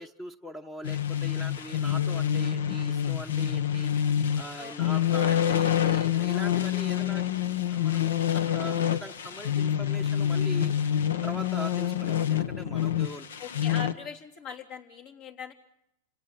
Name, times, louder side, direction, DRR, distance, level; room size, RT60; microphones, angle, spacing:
voice 1, 0.0-3.9 4.4-7.2 7.7-10.7 11.2-13.3 13.7-13.8, equal, 10° left, 9 dB, 0.9 m, -41 dB
sound 1, 0.8-13.9, left 10 dB, 90° left, 1.1 m, -27 dB
voice 2, 4.6-5.0 13.4-15.5, left 5 dB, 55° left, 3 dB, 3.4 m, -42 dB
28.5 x 18.0 x 7.3 m, 0.80 s
supercardioid pair, 130°, 0 cm